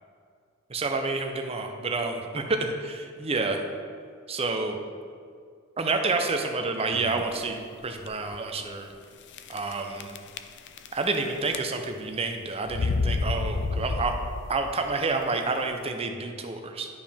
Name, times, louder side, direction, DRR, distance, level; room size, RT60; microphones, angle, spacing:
voice 1, 0.7-3.6 4.3-4.8 5.8-8.9 9.5-10.2 10.9-14.1 14.5-16.9, right 3 dB, 30° right, 4 dB, 0.6 m, -29 dB
sound 1, 6.9-7.4 8.0-8.1 8.3-8.4 9.3-9.7 10.0-11.2 11.5-12.0 12.7-14.6, left 3 dB, 55° left, 0.4 m, -29 dB
11.0 x 5.0 x 3.5 m, 2.2 s
head